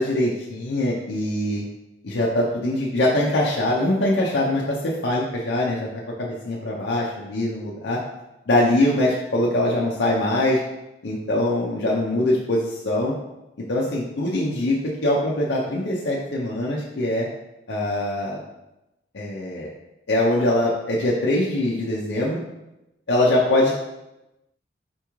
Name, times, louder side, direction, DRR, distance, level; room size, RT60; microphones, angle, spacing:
voice 1, 0.0-1.6 2.0-5.9 6.2-8.0 8.5-10.6 11.0-13.1 13.7-17.3 17.7-18.4 19.1-19.7 20.1-22.4 23.1-23.7, left 1 dB, 65° left, -4 dB, 0.6 m, -22 dB
4.5 x 3.0 x 3.5 m, 0.95 s
head